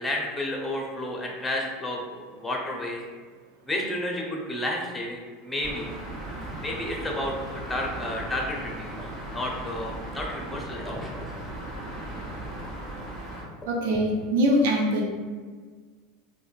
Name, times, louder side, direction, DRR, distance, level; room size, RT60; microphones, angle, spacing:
voice 1, 0.0-3.0 3.7-5.9 6.6-9.0 9.3-11.1, left 1 dB, 10° left, -1 dB, 0.7 m, -31 dB
sound 1, 5.6-13.4, right 1 dB, 40° right, 1.3 m, -37 dB
voice 2, 13.7-15.0, equal, 60° right, 0 dB, 0.5 m, -23 dB
3.7 x 2.2 x 2.5 m, 1.5 s
figure-of-eight pair, 80°, 0 cm